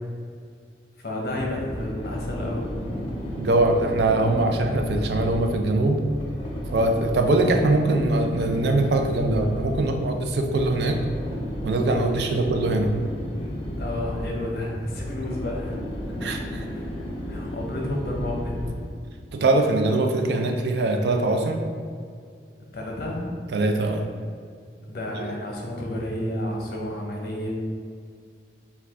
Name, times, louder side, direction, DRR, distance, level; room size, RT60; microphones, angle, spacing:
voice 1, 1.0-2.6 12.1-12.4 13.8-15.8 16.6-18.5 22.7-23.3 24.8-27.5, left 1 dB, 60° left, -1 dB, 0.8 m, -31 dB
sound 1, 1.4-19.0, equal, 35° left, 0.7 m, -33 dB
voice 2, 3.4-6.0 6.7-11.0 11.6-12.9 16.2-16.7 19.3-21.6 23.5-24.1 25.2-25.3, right 2 dB, 70° right, 4 dB, 0.4 m, -22 dB
4.6 x 2.3 x 3.5 m, 2.2 s
head